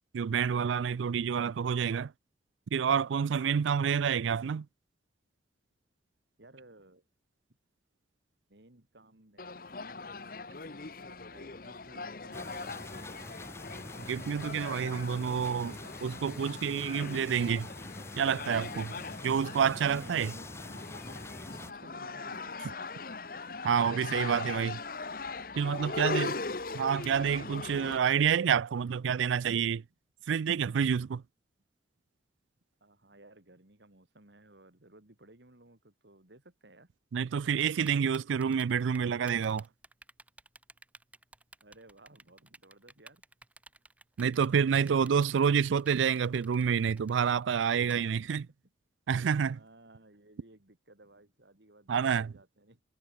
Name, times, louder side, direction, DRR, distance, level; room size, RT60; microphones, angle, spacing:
voice 1, 0.1-2.1 2.7-4.7 14.1-15.7 16.0-17.7 18.2-18.9 19.2-20.3 23.6-24.8 25.6-26.3 26.7-29.8 30.3-31.2 37.1-39.7 44.2-48.4 49.1-49.6 51.9-52.3, right 7 dB, 90° right, 0.4 m, -28 dB
voice 2, 6.4-7.0 8.5-9.6 9.9-13.3 14.7-16.0 19.9-20.3 21.5-22.8 25.4-26.5 32.8-36.9 41.6-43.2 44.5-45.4 47.8-48.4 49.4-52.8, right 2 dB, 70° right, 2.7 m, -58 dB
sound 1, 9.4-28.0, left 3 dB, 50° left, 1.1 m, -40 dB
sound 2, 12.3-21.7, left 2 dB, 15° left, 1.2 m, -45 dB
Typing, 37.6-47.9, right 2 dB, 10° right, 1.1 m, -54 dB
head